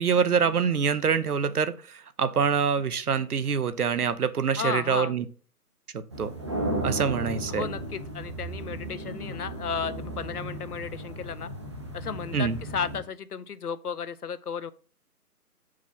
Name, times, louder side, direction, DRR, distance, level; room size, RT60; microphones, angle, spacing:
voice 1, 0.0-5.2 5.9-6.3 6.8-7.6 12.3-12.6, right 6 dB, 70° right, 0.9 m, -25 dB
voice 2, 4.6-5.1 7.5-11.5 11.9-14.7, left 6 dB, 70° left, 0.8 m, -34 dB
sound 1, 6.1-13.0, right 1 dB, 20° right, 0.6 m, -35 dB
6.9 x 4.8 x 3.9 m
figure-of-eight pair, 150°, 47 cm